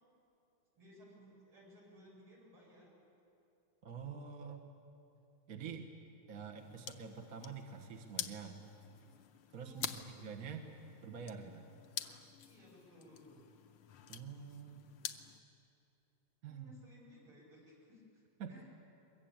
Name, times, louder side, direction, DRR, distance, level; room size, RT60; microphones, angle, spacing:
voice 1, 0.7-3.0 9.6-10.2 12.5-13.4 16.4-18.2 18.5-18.6, left 1 dB, 80° right, -4 dB, 8.0 m, -59 dB
voice 2, 3.8-4.7 5.5-5.9 6.3-8.6 9.5-10.7 11.0-11.6 14.1-14.9 16.4-16.7 18.4-18.5, right 6 dB, 45° right, 2 dB, 1.7 m, -46 dB
sound 1, 6.6-15.4, left 9 dB, 85° left, 1.8 m, -48 dB
22.5 x 22.0 x 8.8 m, 2.8 s
omnidirectional pair, 2.3 m